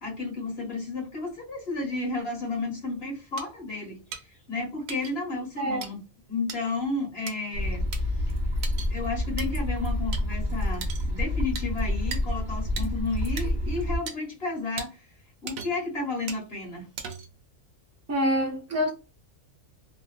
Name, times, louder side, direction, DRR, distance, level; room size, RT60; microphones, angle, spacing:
voice 1, 0.0-4.0 4.5-6.0 6.3-7.9 8.9-15.0 15.4-16.9, left 3 dB, 50° left, 1.3 m, -32 dB
sound 1, 3.4-3.5 4.1-4.2 4.9-5.1 5.8-5.9 6.5-6.6 7.3-7.4 7.9-8.0 8.6-8.9 9.4-9.5 10.1-10.2 10.8-11.1 11.6-11.7 12.1-12.2 12.8-12.9 13.4-13.5 14.1-14.2 14.8-14.9 15.5-15.9 16.3-16.4 17.0-17.4, right 6 dB, 90° right, 1.1 m, -37 dB
sound 2, 7.5-14.0, left 1 dB, 40° right, 1.1 m, -28 dB
voice 2, 18.1-18.9, equal, 20° right, 0.5 m, -25 dB
2.7 x 2.6 x 2.3 m
omnidirectional pair, 1.4 m